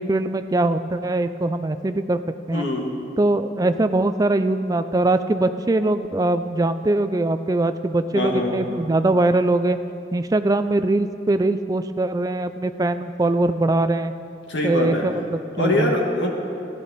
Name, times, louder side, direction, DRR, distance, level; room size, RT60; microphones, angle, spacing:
voice 1, 0.0-2.2 2.5-2.6 3.2-9.8 10.1-14.1 14.6-15.9, right 2 dB, 20° right, 10 dB, 0.3 m, -22 dB
voice 2, 2.5-2.9 8.1-8.6 14.5-15.1 15.6-16.3, left 1 dB, 80° left, 0 dB, 1.7 m, -23 dB
14.5 x 11.0 x 4.1 m, 2.6 s
head